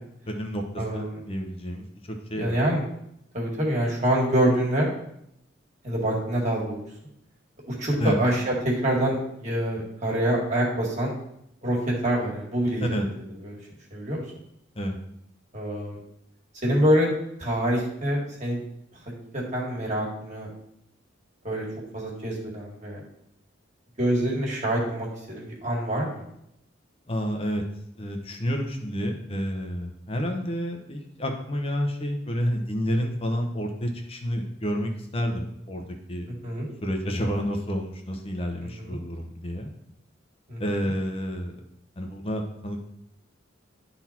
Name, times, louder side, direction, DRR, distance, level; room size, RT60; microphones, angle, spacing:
voice 1, 0.3-2.6 8.0-8.2 12.8-13.1 14.8-15.0 27.1-27.6 28.0-35.8 36.1-36.3 36.8-39.7 40.6-41.5 42.0-42.8, equal, 30° left, 3 dB, 0.9 m, -29 dB
voice 2, 0.8-1.2 2.4-2.8 3.3-4.9 5.8-6.8 7.7-11.1 11.6-11.8 12.0-13.0 13.4-13.6 13.9-14.2 15.5-16.0 16.6-17.1 17.4-18.6 19.3-20.5 21.4-21.6 21.9-23.0 24.0-26.2 36.4-36.7 38.8-39.0 40.5-40.6, right 1 dB, 35° right, -2 dB, 2.0 m, -25 dB
11.0 x 4.1 x 4.3 m, 0.77 s
head